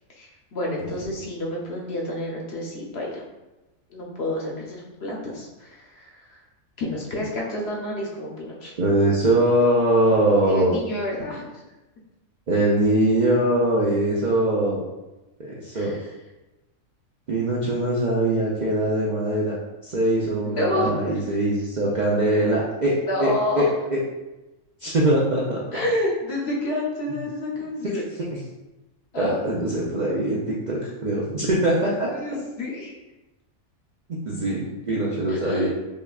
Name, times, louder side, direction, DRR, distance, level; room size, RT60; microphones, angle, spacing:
voice 1, 0.2-3.2 3.9-6.4 6.8-8.7 10.4-11.6 15.7-16.1 20.4-21.1 23.1-23.6 25.7-28.0 29.1-29.4 32.1-32.9 35.3-35.7, left 1 dB, 55° left, -2 dB, 0.9 m, -29 dB
voice 2, 8.8-10.8 12.5-14.8 15.4-16.0 17.3-19.5 19.8-22.9 23.2-23.6 23.9-24.0 24.8-25.6 29.1-32.1 34.1-35.7, right 1 dB, 55° right, -5 dB, 0.5 m, -22 dB
5.2 x 2.3 x 2.3 m, 1.0 s
omnidirectional pair, 1.4 m